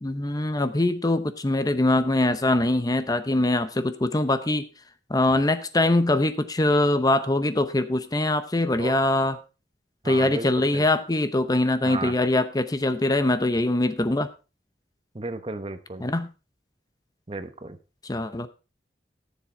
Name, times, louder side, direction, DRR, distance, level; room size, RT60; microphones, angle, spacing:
voice 1, 0.0-4.6 5.1-9.4 10.0-14.3 16.0-16.3 18.0-18.5, left 2 dB, 20° left, 11 dB, 0.7 m, -23 dB
voice 2, 10.0-10.8 11.8-12.1 15.1-16.1 17.3-17.8, right 2 dB, 30° right, 11 dB, 0.9 m, -34 dB
14.0 x 7.2 x 4.3 m, 0.31 s
head